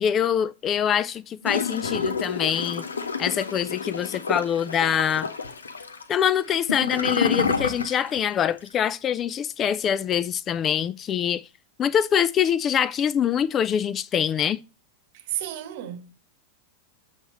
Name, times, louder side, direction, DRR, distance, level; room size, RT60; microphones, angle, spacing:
voice 1, 0.0-2.8 3.2-5.3 6.1-11.4 11.8-14.6, left 9 dB, 25° left, 0.3 m, -24 dB
Gurgling / Toilet flush, 1.4-8.3 8.6-8.7, left 5 dB, 75° left, 0.8 m, -29 dB
voice 2, 15.1-16.1, right 12 dB, 50° right, 1.0 m, -32 dB
7.9 x 5.7 x 3.0 m
figure-of-eight pair, 90°, 0 cm